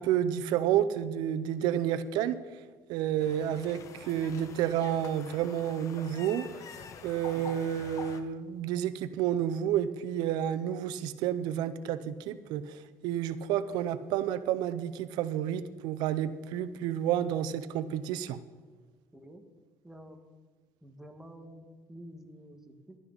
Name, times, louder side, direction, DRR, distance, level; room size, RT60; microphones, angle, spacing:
voice 1, 0.0-2.4 2.9-6.4 7.0-18.4, right 10 dB, 80° right, 13 dB, 0.6 m, -30 dB
sound 1, 3.2-8.2, left 6 dB, 50° left, 1.1 m, -46 dB
voice 2, 19.1-19.4 19.8-20.2 20.8-23.0, equal, 5° right, 4 dB, 1.4 m, -49 dB
16.0 x 12.0 x 4.0 m, 1.3 s
cardioid pair, 130°, 7 cm